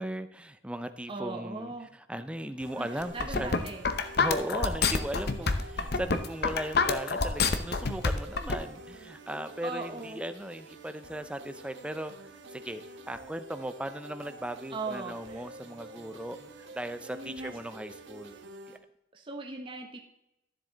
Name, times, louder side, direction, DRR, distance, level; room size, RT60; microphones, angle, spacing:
voice 1, 0.0-3.7 4.2-12.1 12.5-12.8 13.1-16.4 16.7-18.4 18.7-18.8, right 1 dB, 5° right, 10 dB, 0.5 m, -37 dB
voice 2, 1.1-1.9 2.8-3.8 9.6-10.2 14.7-15.5 17.1-17.5 19.1-20.0, right 3 dB, 30° right, 2 dB, 1.0 m, -39 dB
sound 1, 2.6-18.8, right 2 dB, 90° right, 1.4 m, -48 dB
sound 2, 3.0-8.6, left 4 dB, 60° left, 0.8 m, -27 dB
12.5 x 7.4 x 3.9 m, 0.85 s
head